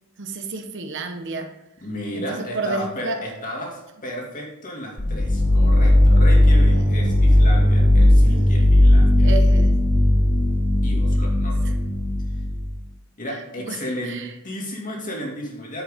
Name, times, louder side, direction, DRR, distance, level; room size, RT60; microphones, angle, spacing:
voice 1, 0.2-1.5 2.1-3.2 8.0-9.8 13.6-14.3, right 3 dB, 55° right, 5 dB, 1.1 m, -31 dB
voice 2, 1.8-9.3 10.8-11.8 13.2-15.8, equal, 40° left, -1 dB, 2.4 m, -33 dB
sound 1, 5.0-12.7, left 1 dB, 80° left, 4.0 m, -16 dB
10.0 x 8.0 x 3.7 m, 0.92 s
head